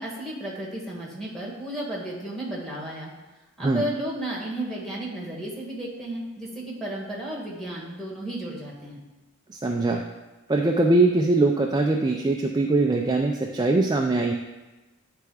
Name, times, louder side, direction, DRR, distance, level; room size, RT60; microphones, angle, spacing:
voice 1, 0.0-3.1 3.6-9.0, right 1 dB, ahead, -4 dB, 1.6 m, -33 dB
voice 2, 9.5-10.0 10.5-14.3, right 2 dB, 20° right, 2 dB, 0.3 m, -22 dB
9.3 x 3.4 x 4.8 m, 1.1 s
head